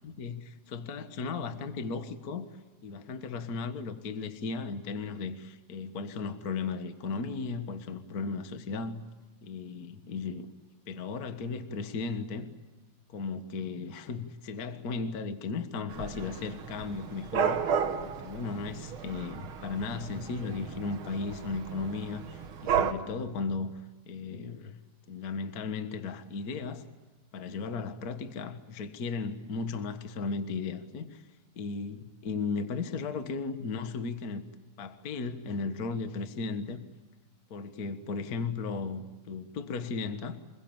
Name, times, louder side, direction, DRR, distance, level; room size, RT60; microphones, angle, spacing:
voice 1, 0.0-2.5 2.8-9.0 9.4-10.5 10.9-12.5 13.1-17.6 18.0-23.7 24.1-24.7 25.1-26.8 27.3-31.2 31.5-32.0 32.2-34.4 34.8-36.9 37.5-40.4, left 4 dB, 60° left, 9 dB, 0.9 m, -35 dB
Dog / Cat, 15.9-22.9, right 7 dB, 60° right, 1.4 m, -33 dB
28.0 x 22.0 x 8.9 m, 1.2 s
omnidirectional pair, 4.2 m